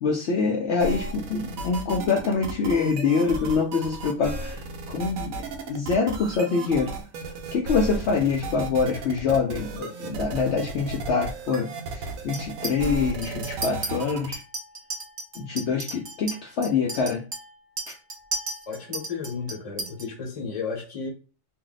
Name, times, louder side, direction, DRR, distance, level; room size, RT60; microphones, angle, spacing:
voice 1, 0.0-6.9 7.5-14.4 15.4-17.2, left 5 dB, 65° left, 0.8 m, -25 dB
sound 1, 0.8-14.3, right 2 dB, 85° right, 1.1 m, -34 dB
Chink clink, 12.3-12.9 13.2-13.9 14.3-20.0, right 2 dB, 45° right, 0.7 m, -35 dB
voice 2, 18.7-21.1, left 5 dB, 30° left, 0.8 m, -33 dB
2.6 x 2.1 x 3.9 m
omnidirectional pair, 1.4 m